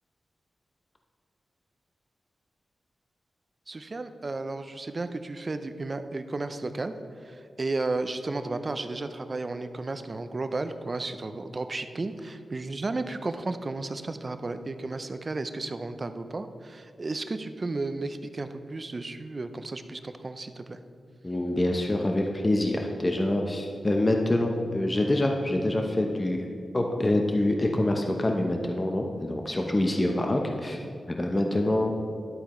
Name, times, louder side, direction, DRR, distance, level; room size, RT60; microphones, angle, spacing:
voice 1, 3.7-6.9 7.2-20.8, right 3 dB, 45° right, 9 dB, 0.5 m, -33 dB
voice 2, 21.2-26.5 26.7-31.9, left 1 dB, 30° left, 2 dB, 0.8 m, -26 dB
11.0 x 8.1 x 3.1 m, 2.5 s
cardioid pair, 50°, 0 cm